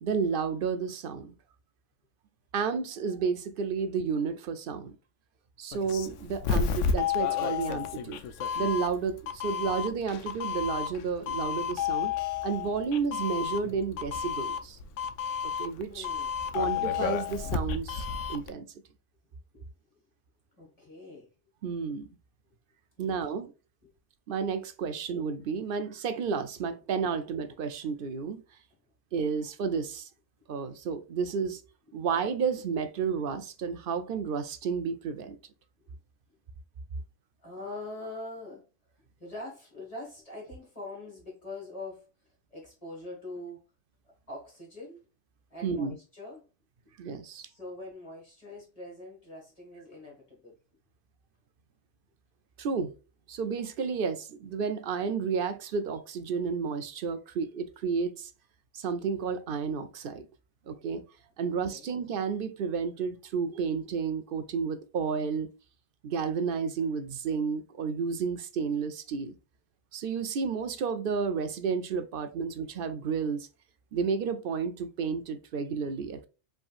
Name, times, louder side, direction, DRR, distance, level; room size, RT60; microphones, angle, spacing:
voice 1, 0.0-1.3 2.5-4.9 5.6-8.2 8.5-12.1 12.4-14.8 15.6-16.1 16.5-18.7 21.6-22.1 23.0-23.5 24.3-28.4 29.1-30.1 30.5-31.6 31.9-35.4 45.6-45.9 47.0-47.4 52.6-52.9 53.3-58.3 58.7-60.3 60.7-61.0 61.4-65.5 66.0-69.3 69.9-73.5 73.9-76.3, right 5 dB, 60° right, 0.7 m, -31 dB
Doorbell, 5.7-18.5, left 7 dB, 85° left, 0.9 m, -31 dB
voice 2, 15.9-16.3 19.5-19.7 20.6-21.3 23.0-23.3 23.8-23.9 35.8-35.9 37.4-38.6 39.0-43.6 44.3-45.0 45.5-46.4 47.4-50.6 61.4-61.9, left 2 dB, 30° left, 2.0 m, -43 dB
5.1 x 3.6 x 2.4 m
omnidirectional pair, 1.2 m